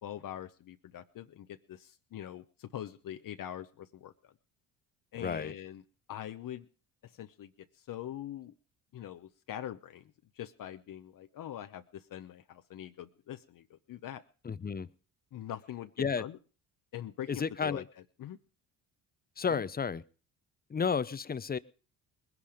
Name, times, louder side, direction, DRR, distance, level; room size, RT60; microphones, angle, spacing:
voice 1, 0.0-4.3 5.1-5.8 6.1-6.7 7.0-7.5 7.8-8.5 8.9-10.0 10.4-14.2 15.3-15.9 16.2-16.4 16.9-17.8 18.2-18.4 19.5-19.6, left 11 dB, 60° left, 8 dB, 0.9 m, -43 dB
voice 2, 5.1-5.5 14.4-14.9 16.0-16.2 17.3-17.8 19.4-20.0 20.7-21.6, left 6 dB, 25° left, 17 dB, 0.7 m, -32 dB
20.0 x 11.0 x 5.1 m, 0.38 s
supercardioid pair, 80°, 38 cm